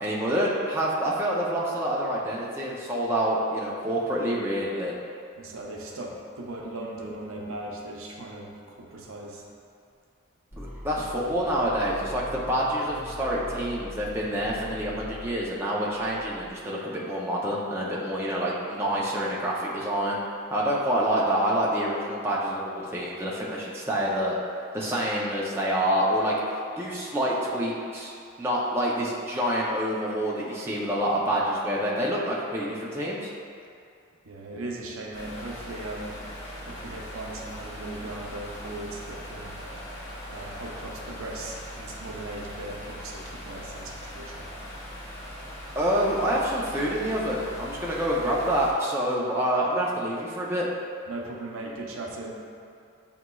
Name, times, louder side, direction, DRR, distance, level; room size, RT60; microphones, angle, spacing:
voice 1, 0.0-4.9 10.6-20.2 20.5-24.3 24.7-28.1 28.4-33.3 45.8-50.7, equal, 10° right, -5 dB, 0.4 m, -27 dB
voice 2, 5.4-9.5 34.2-36.2 36.6-39.6 40.3-44.5 51.1-52.4, right 2 dB, 85° right, 0 dB, 0.6 m, -38 dB
sound 1, 10.5-16.5, left 1 dB, 35° left, 1.3 m, -42 dB
sound 2, 35.1-48.7, equal, 65° left, 1.1 m, -40 dB
7.3 x 2.9 x 2.2 m, 2.4 s
head